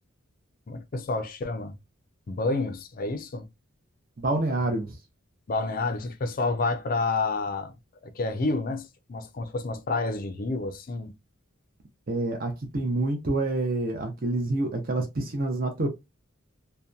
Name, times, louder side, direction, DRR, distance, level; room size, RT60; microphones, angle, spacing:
voice 1, 0.7-1.7 2.3-3.5 5.5-7.7 8.0-11.1, left 3 dB, 40° left, 0.4 m, -29 dB
voice 2, 4.2-4.9 12.1-15.9, right 2 dB, 45° right, 0.6 m, -27 dB
2.7 x 2.2 x 2.3 m
head